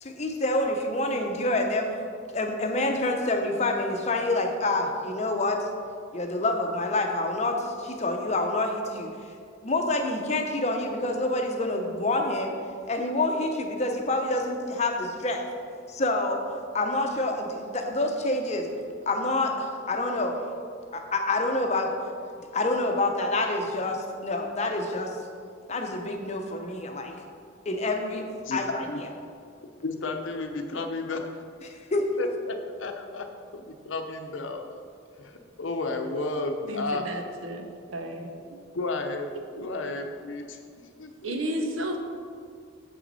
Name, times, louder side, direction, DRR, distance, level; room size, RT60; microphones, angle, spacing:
voice 1, 0.0-1.9 2.3-5.6 6.1-9.1 9.6-12.5 12.9-15.5 15.9-18.7 19.1-20.4 20.9-21.9 22.5-25.1 25.7-27.1 27.7-28.2 28.5-28.8 31.6-32.1, left 2 dB, 35° left, 3 dB, 0.7 m, -27 dB
voice 2, 28.4-29.0 29.8-31.4 32.2-34.7 35.2-37.0 38.7-40.6 41.0-41.4, left 2 dB, 80° left, 5 dB, 0.7 m, -33 dB
voice 3, 36.7-38.6 41.2-42.0, equal, 90° right, 3 dB, 0.9 m, -33 dB
7.0 x 6.1 x 4.1 m, 2.2 s
head